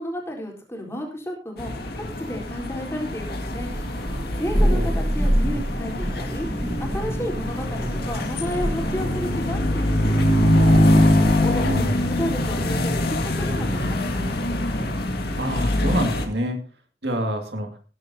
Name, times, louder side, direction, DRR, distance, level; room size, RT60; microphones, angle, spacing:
voice 1, 0.0-3.7 4.4-6.5 6.8-10.8 11.4-14.3, equal, 15° left, -1 dB, 4.0 m, -32 dB
sound 1, 1.6-16.3, left 1 dB, 60° left, 2.1 m, -23 dB
Thunder, 3.5-12.0, equal, 20° right, 1.3 m, -27 dB
voice 2, 11.6-11.9 15.4-16.6 17.0-17.7, equal, 65° right, 5 dB, 2.3 m, -26 dB
18.5 x 11.0 x 2.8 m, 0.36 s
head